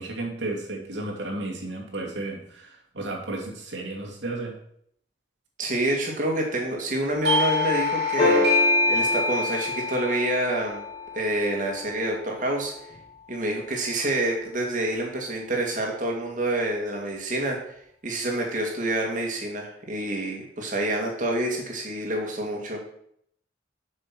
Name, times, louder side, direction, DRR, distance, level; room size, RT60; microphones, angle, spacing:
voice 1, 0.0-4.5, right 2 dB, 80° right, -1 dB, 2.6 m, -33 dB
voice 2, 5.6-8.5 8.9-10.8 11.1-12.7 13.3-17.6 18.0-22.8, right 1 dB, 45° right, 0 dB, 2.4 m, -27 dB
Doorbell, 7.2-12.5, left 3 dB, 65° right, 2.5 m, -26 dB
sound 1, 8.2-10.7 12.9-13.0, left 2 dB, 30° left, 2.9 m, -26 dB
7.5 x 6.5 x 6.1 m, 0.69 s
head